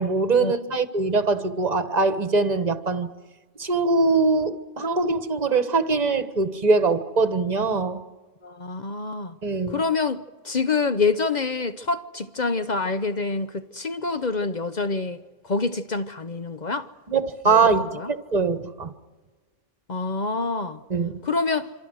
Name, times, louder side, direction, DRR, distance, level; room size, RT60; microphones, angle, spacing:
voice 1, 0.0-3.1 3.6-8.0 9.4-9.8 17.1-17.8 18.3-18.9 20.9-21.2, right 3 dB, 30° right, 1.4 m, -22 dB
voice 2, 8.4-9.4 9.7-16.9 17.4-18.1 19.9-20.8 21.2-21.7, left 4 dB, 40° left, 0.8 m, -27 dB
27.0 x 26.0 x 6.4 m
omnidirectional pair, 1.5 m